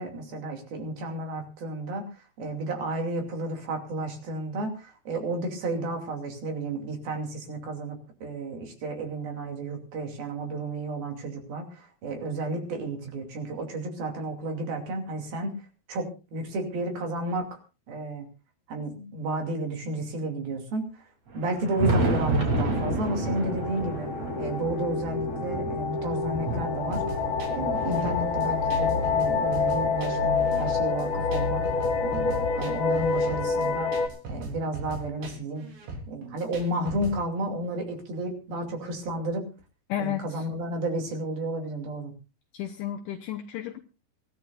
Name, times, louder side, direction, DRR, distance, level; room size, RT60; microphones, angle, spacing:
voice 1, 0.0-2.1 2.4-15.5 15.9-17.5 17.9-18.2 18.7-20.8 21.3-24.1 24.4-27.0 27.5-31.7 32.0-33.9 34.3-35.7 36.1-39.4 40.0-42.1, right 2 dB, 60° right, 3 dB, 4.4 m, -32 dB
Thunder, 21.3-29.8 30.5-32.2 33.3-33.4 34.0-34.1 36.0-36.1 37.4-37.5 39.1-39.2, right 2 dB, 40° right, 3.8 m, -32 dB
sound 1, 22.5-34.1, left 4 dB, 40° left, 2.2 m, -28 dB
sound 2, 26.9-37.2, right 2 dB, 80° right, 5.9 m, -39 dB
voice 2, 39.9-40.4 42.5-43.8, left 11 dB, 80° left, 4 dB, 1.9 m, -32 dB
24.0 x 14.5 x 2.5 m, 0.31 s
omnidirectional pair, 4.9 m